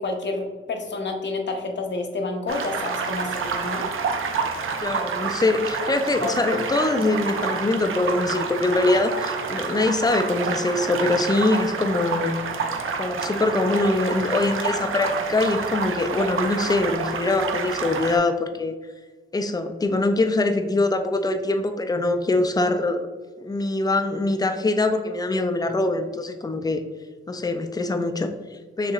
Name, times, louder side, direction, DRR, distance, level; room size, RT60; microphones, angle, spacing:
voice 1, 0.0-3.9 6.2-6.3, left 3 dB, 60° left, 3 dB, 0.7 m, -29 dB
sound 1, 2.5-18.2, right 5 dB, 80° right, 0.5 m, -28 dB
voice 2, 4.8-12.3 13.0-18.7 19.3-23.1 23.4-26.8 27.3-28.9, left 2 dB, 20° left, 7 dB, 0.4 m, -23 dB
6.5 x 2.9 x 2.4 m, 1.4 s
wide cardioid pair, 105°, 21 cm